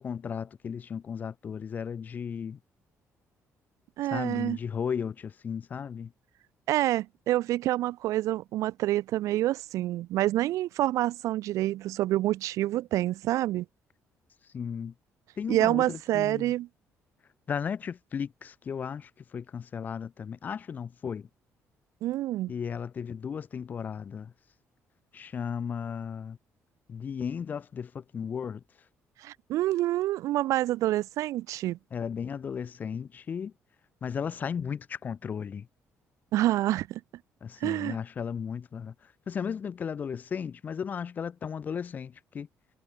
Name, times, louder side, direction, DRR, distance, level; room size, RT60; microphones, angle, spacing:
voice 1, 0.0-2.6 4.1-6.1 14.5-14.9 15.4-16.5 17.5-21.3 22.5-24.3 25.1-26.4 26.9-28.6 31.9-33.5 34.0-35.7 37.4-42.5, left 7 dB, 35° left, 4.6 m, -35 dB
voice 2, 4.0-4.6 6.7-13.6 15.5-16.7 22.0-22.5 29.2-31.8 36.3-37.0 37.6-38.0, right 15 dB, 80° right, 8.0 m, -27 dB
cardioid pair, 175°, 5 cm